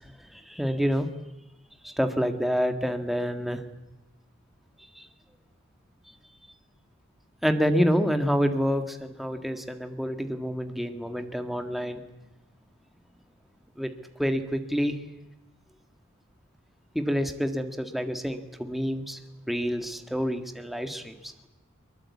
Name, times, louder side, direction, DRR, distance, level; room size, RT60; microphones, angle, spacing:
voice 1, 0.3-1.1 1.8-3.6 5.0-5.1 7.4-12.0 13.8-13.9 14.2-15.0 16.9-19.2 19.5-21.3, equal, ahead, 6 dB, 1.8 m, -27 dB
24.0 x 22.5 x 8.5 m, 1.0 s
head